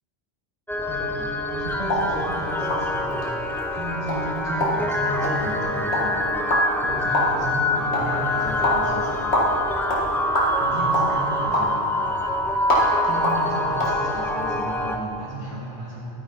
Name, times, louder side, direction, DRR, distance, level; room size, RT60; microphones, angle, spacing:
sound 1, 0.7-15.0, left 1 dB, 5° left, 0.4 m, -25 dB
voice 1, 0.9-3.3 3.7-6.2 6.8-9.3 10.6-11.8 13.0-16.0, right 1 dB, 30° right, -7 dB, 1.7 m, -33 dB
sound 2, 1.8-14.0, equal, 80° left, 2.1 m, -27 dB
Bicycle, 2.3-12.7, left 1 dB, 45° left, 1.4 m, -45 dB
12.0 x 9.4 x 4.0 m, 2.6 s
omnidirectional pair, 1.1 m